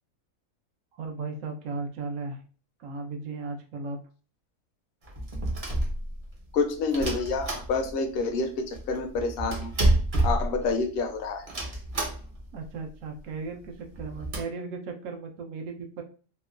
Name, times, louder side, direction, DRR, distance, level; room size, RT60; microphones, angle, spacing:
voice 1, 0.9-2.4 2.8-4.0 12.5-16.0, right 4 dB, 85° right, 3 dB, 1.0 m, -36 dB
sound 1, 5.0-6.4 6.9-8.2 8.4-8.5 8.7-11.0 11.5-12.5 12.9-13.0 13.2-13.3 13.8-14.4, right 1 dB, 45° right, 0.4 m, -28 dB
voice 2, 6.5-9.7 10.2-11.5, left 4 dB, 60° left, 5 dB, 0.6 m, -28 dB
3.0 x 2.1 x 2.3 m, 0.39 s
omnidirectional pair, 1.4 m